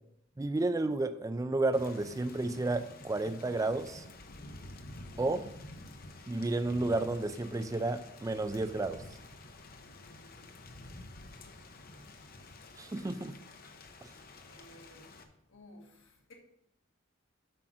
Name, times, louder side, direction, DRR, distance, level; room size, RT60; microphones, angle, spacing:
voice 1, 0.4-4.0 5.2-5.5 6.3-9.0 12.8-13.4 14.0-14.1, right 2 dB, 15° right, 0.3 m, -32 dB
Thunder / Rain, 1.7-15.2, left 2 dB, 50° left, 0.8 m, -50 dB
voice 2, 9.8-10.8 14.4-15.2 15.5-16.3, left 1 dB, 75° left, 1.7 m, -57 dB
7.8 x 4.9 x 6.0 m
head